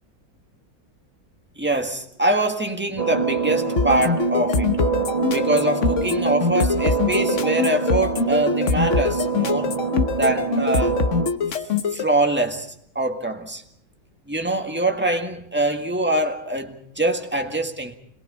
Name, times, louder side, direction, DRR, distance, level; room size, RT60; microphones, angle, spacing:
voice 1, 1.6-4.7 5.3-9.8 10.2-11.1 11.9-13.6 14.3-18.0, right 2 dB, 5° right, 1.6 m, -24 dB
sound 1, 3.0-11.3, right 5 dB, 25° right, 1.1 m, -25 dB
sound 2, 3.8-12.0, left 5 dB, 45° left, 1.2 m, -23 dB
27.0 x 21.5 x 5.5 m
omnidirectional pair, 2.1 m